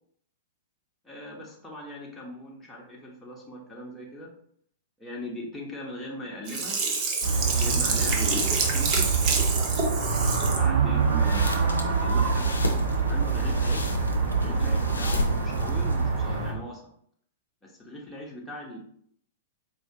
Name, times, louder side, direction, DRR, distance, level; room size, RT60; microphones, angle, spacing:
voice 1, 1.0-4.3 5.0-6.8 7.2-9.1 10.3-12.6 13.1-14.0 14.4-16.8 17.6-18.8, equal, 10° left, -3 dB, 1.0 m, -39 dB
Sink (filling or washing), 6.5-10.7 11.1-11.2, right 4 dB, 40° right, 0.8 m, -27 dB
sound 1, 7.2-16.5, right 5 dB, 60° right, 1.3 m, -25 dB
sound 2, 11.0-16.2, left 2 dB, 85° left, 0.5 m, -33 dB
4.4 x 2.7 x 2.8 m, 0.66 s
figure-of-eight pair, 105°, 0 cm